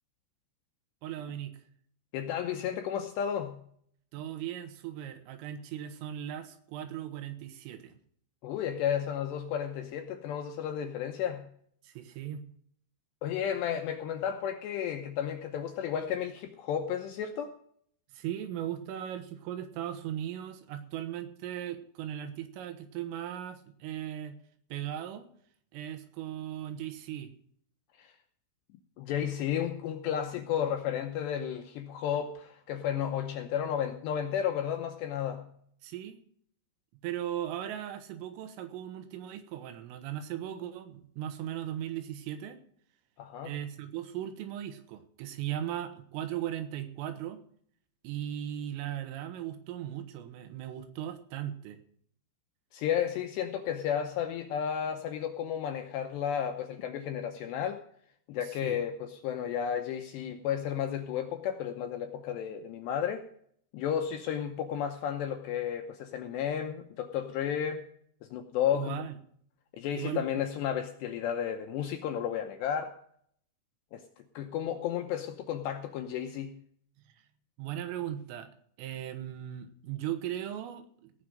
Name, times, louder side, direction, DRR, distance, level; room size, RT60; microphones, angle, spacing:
voice 1, 1.0-1.6 4.1-8.0 11.8-12.5 18.1-24.4 24.7-25.3 25.7-27.3 35.8-36.2 37.0-42.6 43.4-47.4 48.0-51.8 58.4-58.8 68.7-69.2 69.9-70.4 77.6-78.5 78.8-81.1, right 11 dB, 80° right, 9 dB, 3.8 m, -38 dB
voice 2, 2.1-3.7 8.4-11.5 13.2-17.6 28.0-28.1 29.0-35.5 43.2-43.5 52.7-57.8 58.3-63.2 63.7-67.8 68.3-69.0 69.7-72.9 73.9-74.0 74.4-76.6, left 9 dB, 75° left, 5 dB, 2.6 m, -33 dB
18.0 x 6.2 x 6.5 m, 0.62 s
omnidirectional pair, 5.8 m